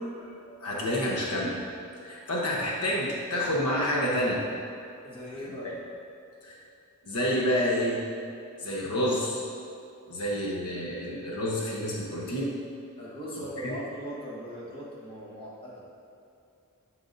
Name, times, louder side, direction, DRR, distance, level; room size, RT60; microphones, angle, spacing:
voice 1, 0.2-1.6 2.0-4.4 5.5-5.7 6.4-6.5 7.0-8.0 8.6-9.4 10.1-12.5 13.4-13.7, equal, 75° left, -3 dB, 1.1 m, -29 dB
voice 2, 5.0-5.7 13.0-15.8, equal, 25° left, -6 dB, 1.4 m, -40 dB
11.5 x 4.7 x 2.7 m, 2.7 s
head